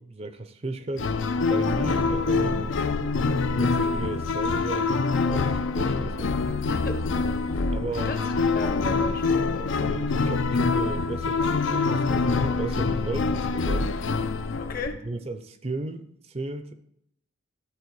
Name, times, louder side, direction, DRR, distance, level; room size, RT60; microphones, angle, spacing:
voice 1, 0.0-2.8 3.6-6.9 7.7-8.1 9.8-14.0 15.0-16.7, right 2 dB, 30° right, 10 dB, 0.5 m, -35 dB
sound 1, 1.0-14.9, left 4 dB, 65° left, 0.5 m, -25 dB
voice 2, 6.7-7.0 8.0-10.0 14.6-15.0, left 3 dB, 45° left, 8 dB, 0.9 m, -36 dB
13.0 x 4.4 x 4.7 m, 0.75 s
head